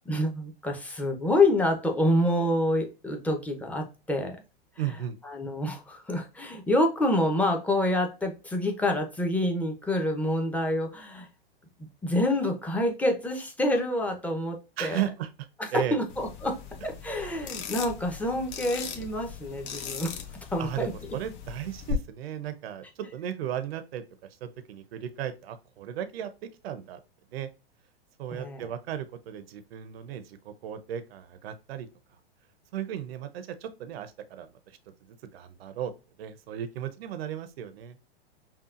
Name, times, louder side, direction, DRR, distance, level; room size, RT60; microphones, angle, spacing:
voice 1, 0.1-4.4 5.2-11.3 12.0-15.0 15.6-20.2 20.5-20.9 28.3-28.6, left 1 dB, 5° left, 0.8 m, -27 dB
voice 2, 4.8-5.2 14.8-15.3 15.7-16.0 20.6-24.0 24.4-26.3 26.6-27.0 27.3-27.5 28.2-31.9 32.7-35.9 36.2-38.0, right 10 dB, 75° right, 0.7 m, -35 dB
sound 1, 16.1-21.9, left 8 dB, 55° left, 1.1 m, -39 dB
5.6 x 2.4 x 2.4 m
hypercardioid pair, 125°, 31 cm